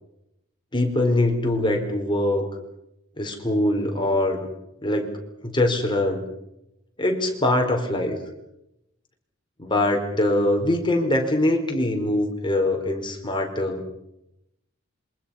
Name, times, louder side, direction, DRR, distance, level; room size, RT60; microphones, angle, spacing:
voice 1, 0.7-2.5 3.2-4.5 4.8-5.1 5.4-6.2 7.0-8.2 9.6-13.8, left 1 dB, 25° left, 3 dB, 4.5 m, -23 dB
27.0 x 24.5 x 5.7 m, 0.85 s
head